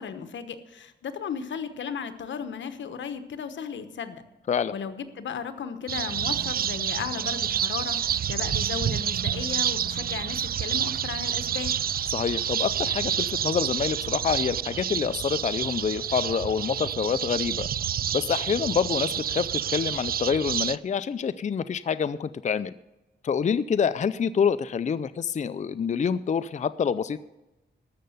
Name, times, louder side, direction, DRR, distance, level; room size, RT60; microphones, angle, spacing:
voice 1, 0.0-4.2 4.7-11.7, left 7 dB, 80° left, 10 dB, 1.1 m, -35 dB
sound 1, 5.9-20.8, right 9 dB, 55° right, 0.4 m, -29 dB
voice 2, 12.1-17.7 18.1-22.7 23.2-27.2, left 6 dB, 40° left, 14 dB, 0.4 m, -27 dB
13.5 x 6.6 x 7.9 m, 1.0 s
cardioid pair, 75°, 19 cm